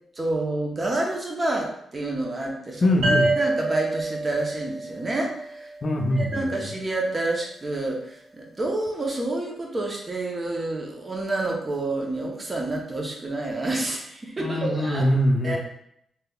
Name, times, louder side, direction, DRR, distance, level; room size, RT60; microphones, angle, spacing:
voice 1, 0.2-2.9 3.2-5.7 6.1-15.1 15.4-15.6, right 2 dB, 35° right, 0 dB, 0.8 m, -28 dB
voice 2, 2.8-3.3 5.8-6.5 14.4-15.6, left 1 dB, 50° left, 3 dB, 0.5 m, -22 dB
sound 1, 3.0-6.5, right 2 dB, 65° right, 0.9 m, -28 dB
3.3 x 2.9 x 2.3 m, 0.73 s
supercardioid pair, 55°, 0 cm